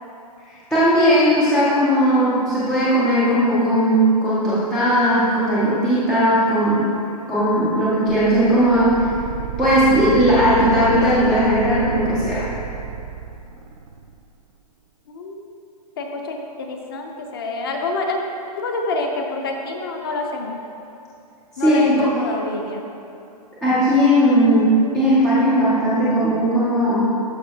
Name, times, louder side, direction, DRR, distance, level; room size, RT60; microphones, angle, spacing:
voice 1, 0.7-6.9 7.3-9.2 9.6-12.4 21.6-22.0 23.6-27.0, equal, ahead, -11 dB, 0.4 m, -17 dB
sound 1, 8.1-14.2, right 6 dB, 75° right, 0.7 m, -30 dB
voice 2, 15.1-15.5 16.0-18.2 18.6-20.6 21.6-22.8, left 3 dB, 35° left, 3 dB, 0.7 m, -27 dB
12.5 x 5.1 x 2.8 m, 2.7 s
hypercardioid pair, 175°, 20 cm